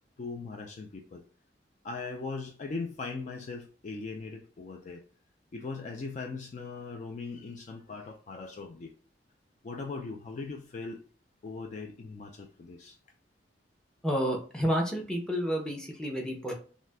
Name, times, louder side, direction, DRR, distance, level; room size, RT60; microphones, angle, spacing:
voice 1, 0.2-1.2 1.8-5.0 5.5-8.9 9.6-11.0 11.4-13.0, left 4 dB, 40° left, 0.3 m, -39 dB
voice 2, 14.0-16.5, equal, 5° left, 0.6 m, -30 dB
2.6 x 2.4 x 3.2 m
head